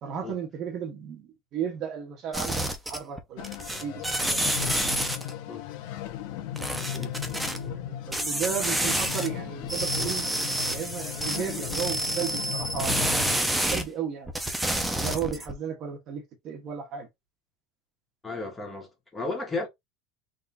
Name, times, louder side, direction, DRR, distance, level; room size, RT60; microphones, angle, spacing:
voice 1, 0.0-3.5 3.8-4.7 6.6-10.3 10.7-14.3 14.9-17.1, right 8 dB, 40° right, 1.3 m, -35 dB
sound 1, 2.3-3.2 3.4-5.3 6.6-7.6 8.1-9.3 9.6-13.8 14.3-15.5, right 1 dB, 5° right, 0.8 m, -29 dB
sound 2, 3.4-13.4, left 11 dB, 65° left, 1.0 m, -36 dB
voice 2, 18.2-19.7, left 3 dB, 15° left, 1.8 m, -33 dB
4.0 x 3.7 x 2.7 m
supercardioid pair, 145°, 0 cm